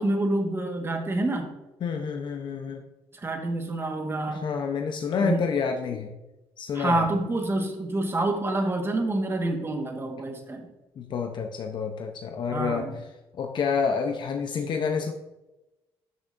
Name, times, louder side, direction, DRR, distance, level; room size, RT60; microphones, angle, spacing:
voice 1, 0.0-1.5 3.1-4.4 5.2-5.4 6.7-10.7 12.5-12.9, right 2 dB, 25° right, 4 dB, 1.5 m, -27 dB
voice 2, 1.8-2.8 4.3-6.1 6.6-7.1 11.0-12.9 13.3-15.1, left 6 dB, 55° left, 4 dB, 0.8 m, -28 dB
12.0 x 6.2 x 2.6 m, 1.0 s
cardioid pair, 95°, 10 cm